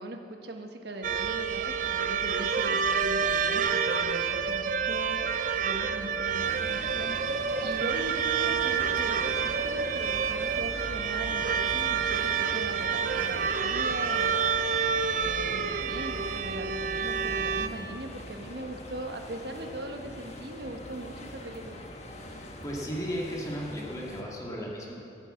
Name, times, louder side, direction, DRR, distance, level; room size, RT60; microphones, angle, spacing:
voice 1, 0.0-5.2 5.6-14.5 15.1-21.8, right 1 dB, 65° right, 4 dB, 1.2 m, -40 dB
sound 1, 1.0-17.7, right 6 dB, 45° right, 0.5 m, -28 dB
sound 2, 6.4-24.2, left 1 dB, 40° left, 1.3 m, -44 dB
voice 2, 22.6-24.9, equal, 20° left, -3 dB, 2.2 m, -35 dB
14.0 x 9.0 x 7.6 m, 2.9 s
head